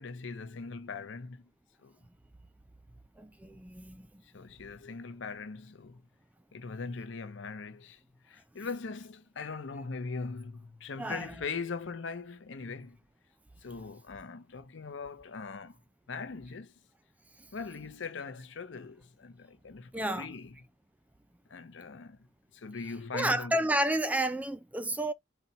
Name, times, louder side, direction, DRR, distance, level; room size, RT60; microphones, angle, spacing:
voice 1, 0.0-1.5 1.8-1.9 4.3-6.0 6.5-13.0 13.6-15.8 16.1-16.7 17.5-20.5 21.5-22.2 22.5-23.7, left 4 dB, 70° left, 0.6 m, -40 dB
voice 2, 3.2-4.1 11.0-11.3 19.9-20.3 23.1-25.1, right 1 dB, 10° right, 0.3 m, -30 dB
4.0 x 2.2 x 4.1 m
head